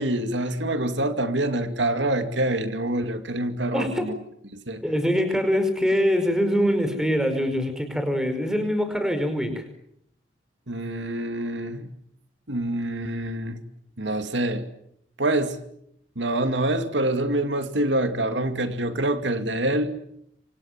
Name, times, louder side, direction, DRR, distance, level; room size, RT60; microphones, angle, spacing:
voice 1, 0.0-4.1 4.5-4.8 10.7-11.9 12.5-13.6 14.0-14.6 15.2-15.6 16.2-19.9, right 1 dB, 80° right, 8 dB, 2.5 m, -26 dB
voice 2, 3.7-4.1 4.8-9.6, equal, 5° right, 8 dB, 5.1 m, -23 dB
27.5 x 25.5 x 7.4 m, 0.72 s
head